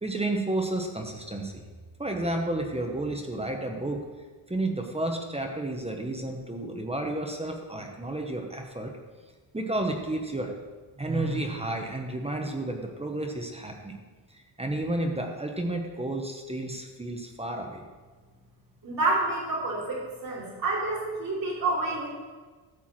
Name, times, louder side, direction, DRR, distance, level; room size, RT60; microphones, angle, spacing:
voice 1, 0.0-1.5 2.0-4.0 4.5-8.9 9.5-10.5 11.0-14.0 14.6-17.8, right 2 dB, 15° right, 2 dB, 0.9 m, -31 dB
voice 2, 18.8-22.1, right 2 dB, 45° right, -6 dB, 4.0 m, -28 dB
13.0 x 4.6 x 7.5 m, 1.4 s
wide cardioid pair, 170°, 48 cm